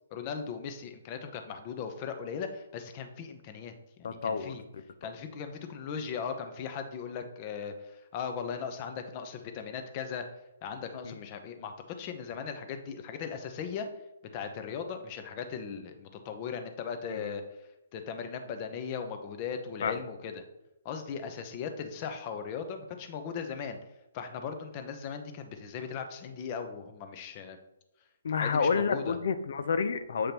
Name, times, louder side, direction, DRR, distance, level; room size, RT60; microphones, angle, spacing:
voice 1, 0.1-3.7 4.0-4.6 5.0-10.3 10.6-13.9 14.3-20.4 20.8-23.8 24.1-27.6 28.4-29.2, left 6 dB, 35° left, 7 dB, 0.9 m, -38 dB
voice 2, 4.0-4.5 11.0-11.1 17.1-17.3 19.8-19.9 28.2-30.3, left 5 dB, 65° left, 11 dB, 0.6 m, -29 dB
8.0 x 5.0 x 3.0 m, 0.94 s
figure-of-eight pair, 135°, 0 cm